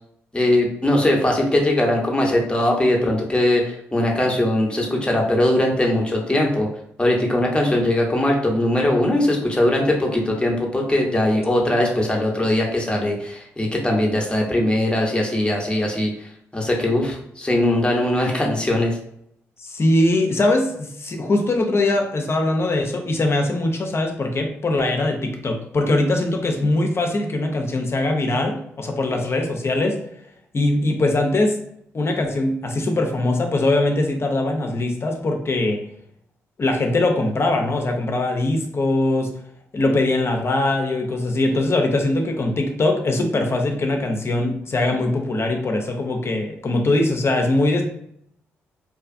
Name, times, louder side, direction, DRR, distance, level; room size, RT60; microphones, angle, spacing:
voice 1, 0.3-6.7 7.0-16.3 16.5-19.0, left 1 dB, 15° left, -1 dB, 0.9 m, -20 dB
voice 2, 19.6-30.0 30.5-31.6 31.9-35.8 36.6-39.3 39.7-47.8, left 2 dB, 40° left, 3 dB, 0.6 m, -21 dB
2.6 x 2.4 x 2.5 m, 0.71 s
hypercardioid pair, 40°, 7 cm